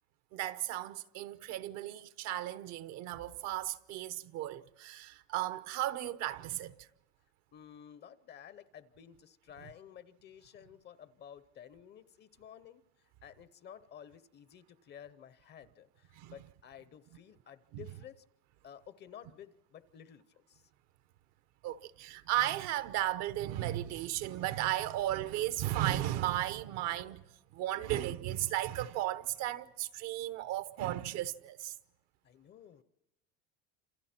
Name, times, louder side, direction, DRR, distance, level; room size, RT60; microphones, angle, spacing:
voice 1, 0.3-6.9 16.1-16.3 17.7-17.8 21.6-27.2 27.5-31.7, right 14 dB, 55° right, 0.9 m, -35 dB
voice 2, 7.5-12.8 13.2-18.2 18.6-20.7 32.2-32.8, left 9 dB, 35° left, 0.8 m, -53 dB
29.0 x 27.5 x 4.4 m
supercardioid pair, 135°, 32 cm